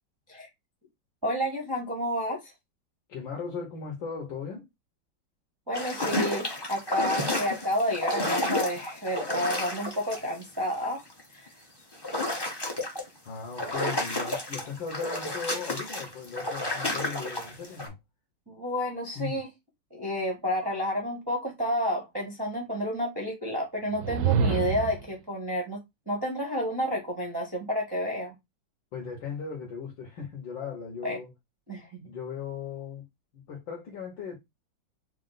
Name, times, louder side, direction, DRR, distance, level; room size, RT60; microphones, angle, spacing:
voice 1, 1.2-2.5 5.7-11.0 11.3-11.6 18.5-19.5 19.9-25.8 26.1-28.3 31.0-31.2 31.7-32.0, equal, 30° right, 0.4 m, -30 dB
voice 2, 3.1-4.6 13.2-18.0 19.2-19.4 28.9-31.3 32.1-33.0 33.3-34.4, left 6 dB, 75° left, 1.8 m, -37 dB
sound 1, 5.7-10.4 10.8-11.2 11.9-13.1 13.6-17.9, left 1 dB, 30° left, 0.4 m, -31 dB
sound 2, 23.9-25.1, right 7 dB, 75° right, 0.9 m, -26 dB
4.3 x 2.0 x 3.8 m
omnidirectional pair, 2.1 m